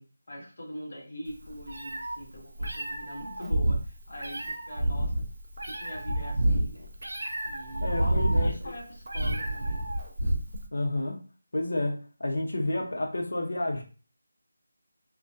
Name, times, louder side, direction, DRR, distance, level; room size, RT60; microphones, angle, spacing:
voice 1, 0.0-5.2 5.6-6.9 7.4-9.8, equal, 45° left, -2 dB, 1.0 m, -42 dB
Meow, 1.3-10.7, right 1 dB, 65° right, 0.5 m, -29 dB
voice 2, 7.8-8.5 10.7-11.2 11.5-13.8, left 1 dB, 70° left, 2 dB, 0.7 m, -30 dB
2.4 x 2.2 x 2.5 m, 0.37 s
figure-of-eight pair, 180°, 0 cm